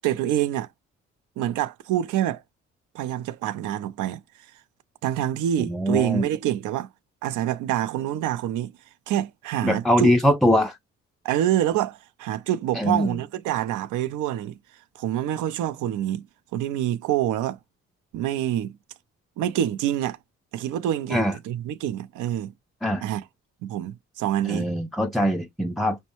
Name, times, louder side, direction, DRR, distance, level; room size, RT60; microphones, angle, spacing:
voice 1, 0.0-0.7 1.4-2.4 2.9-4.2 5.0-6.9 7.2-8.7 9.1-10.1 11.2-14.6 15.0-16.2 16.5-17.6 18.1-18.8 19.4-20.2 20.5-22.5 23.0-23.2 23.6-24.7, right 12 dB, 85° right, 0.5 m, -26 dB
voice 2, 5.6-6.3 9.6-10.8 12.8-13.2 21.1-21.3 22.8-23.0 24.5-26.0, equal, ahead, 0.3 m, -22 dB
5.3 x 2.2 x 2.8 m
cardioid pair, 90°, 30 cm